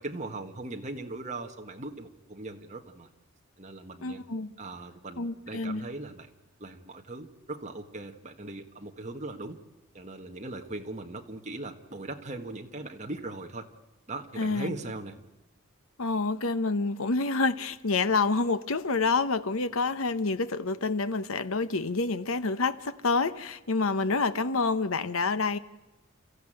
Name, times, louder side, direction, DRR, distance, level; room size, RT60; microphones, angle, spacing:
voice 1, 0.0-3.1 3.6-4.2 4.6-6.3 6.6-9.6 9.9-13.7 14.1-15.2, right 2 dB, 30° right, 1.6 m, -39 dB
voice 2, 4.0-4.5 5.2-5.9 14.4-14.8 16.0-25.6, left 3 dB, 70° left, 0.9 m, -28 dB
30.0 x 14.5 x 9.0 m
head